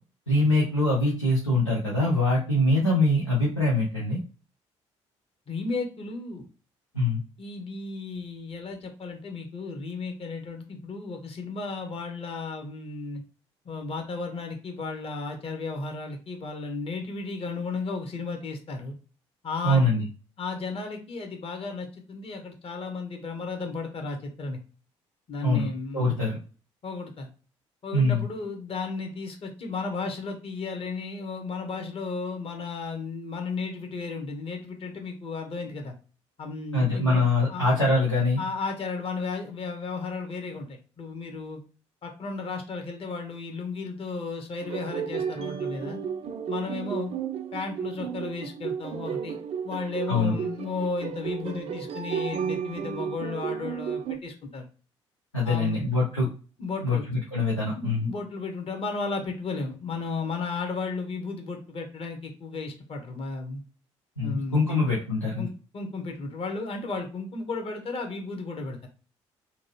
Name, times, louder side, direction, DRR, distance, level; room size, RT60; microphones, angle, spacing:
voice 1, 0.3-4.2 6.9-7.2 19.6-20.0 25.4-26.4 27.9-28.3 36.7-38.4 50.1-50.3 55.3-56.3 56.8-58.1 64.2-65.5, left 2 dB, 90° left, -5 dB, 0.6 m, -23 dB
voice 2, 5.5-6.5 7.4-13.2 13.6-18.9 19.4-20.0 20.4-24.6 25.3-26.2 26.8-27.3 27.8-35.9 36.4-37.7 38.4-41.6 42.0-46.0 46.5-47.1 47.5-49.4 49.6-54.7 55.4-55.8 56.6-57.1 57.7-63.6 64.2-64.9 65.4-68.9, left 4 dB, 40° left, 3 dB, 1.0 m, -34 dB
sound 1, 44.6-54.2, right 7 dB, 40° right, 0.4 m, -33 dB
2.8 x 2.3 x 3.0 m, 0.36 s
figure-of-eight pair, 45°, 15 cm